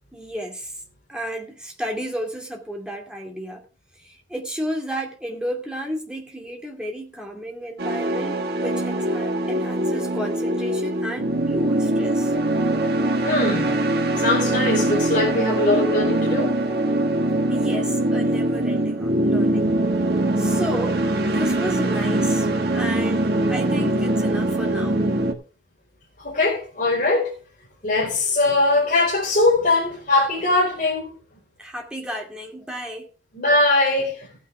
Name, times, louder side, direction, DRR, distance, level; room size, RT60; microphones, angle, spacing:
voice 1, 0.1-0.8 1.1-3.7 4.0-12.3 17.5-19.7 20.4-25.0 31.6-33.1, equal, 5° right, 2.3 m, -32 dB
sound 1, 7.8-25.3, right 1 dB, 50° right, 1.5 m, -22 dB
voice 2, 13.2-13.8 14.2-16.6 26.2-27.3 27.8-31.2 33.3-34.3, left 2 dB, 45° left, 4.5 m, -21 dB
15.5 x 9.4 x 3.4 m
head